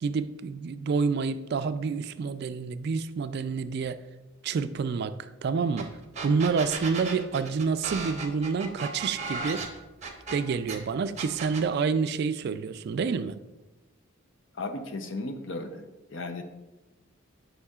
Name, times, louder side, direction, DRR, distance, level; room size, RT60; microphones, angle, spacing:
voice 1, 0.0-4.0 4.4-5.9 6.2-9.7 10.3-13.4, right 5 dB, 55° right, 0.3 m, -28 dB
sound 1, 5.8-5.9 6.1-10.8 11.2-11.7, right 4 dB, 35° right, 0.8 m, -35 dB
voice 2, 14.5-15.8 16.1-16.4, left 2 dB, 65° left, 0.6 m, -35 dB
9.8 x 5.5 x 2.3 m
head